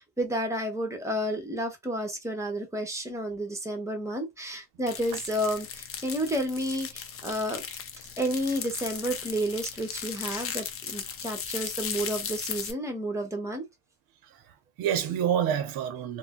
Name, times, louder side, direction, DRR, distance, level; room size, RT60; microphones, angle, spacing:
voice 1, 0.0-7.6 8.2-13.7, equal, 10° right, 1.0 m, -31 dB
sound 1, 4.9-12.7, left 7 dB, 40° left, 0.6 m, -37 dB
voice 2, 14.2-16.2, right 9 dB, 85° right, 0.7 m, -28 dB
2.5 x 2.1 x 3.6 m
cardioid pair, 105°, 35 cm